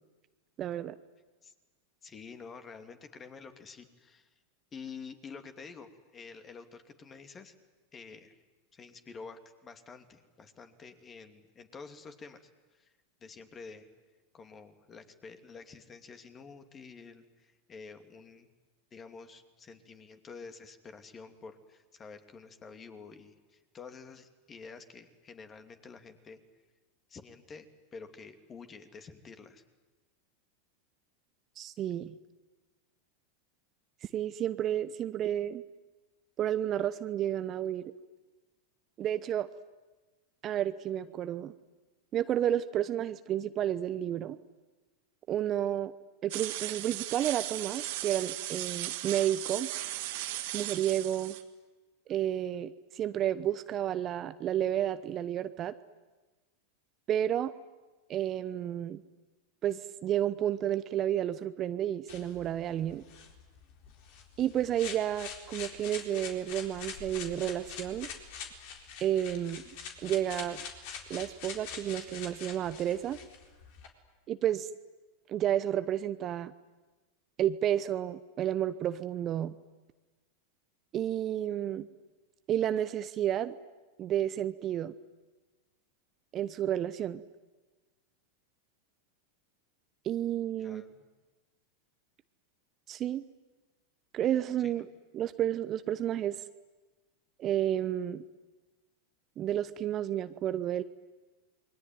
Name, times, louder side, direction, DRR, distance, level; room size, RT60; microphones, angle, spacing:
voice 1, 0.6-1.0 31.6-32.2 34.1-35.6 36.4-37.9 39.0-39.5 40.4-41.5 42.1-44.4 45.3-45.9 46.2-49.7 50.5-51.4 52.1-55.7 57.1-57.5 58.1-59.0 59.6-63.0 64.4-68.1 69.0-69.6 70.0-70.6 71.1-73.2 74.3-74.7 75.3-76.5 77.4-79.5 80.9-81.9 82.5-83.6 84.0-84.9 86.3-87.2 90.0-90.8 92.9-93.2 94.1-94.9 95.1-96.4 97.4-98.2 99.4-100.8, right 11 dB, 35° right, 12 dB, 0.9 m, -31 dB
voice 2, 2.0-4.3 4.7-7.5 7.9-8.4 8.7-12.9 13.2-13.9 14.3-18.5 18.9-26.4 27.1-27.7 27.9-29.6 90.6-91.0 94.6-94.9, left 5 dB, 25° left, 7 dB, 2.8 m, -49 dB
sound 1, 46.3-51.4, right 15 dB, 60° right, 1.9 m, -37 dB
sound 2, 62.1-73.9, left 6 dB, 55° left, 4.1 m, -45 dB
28.0 x 22.0 x 9.4 m, 1.2 s
hypercardioid pair, 95°, 0 cm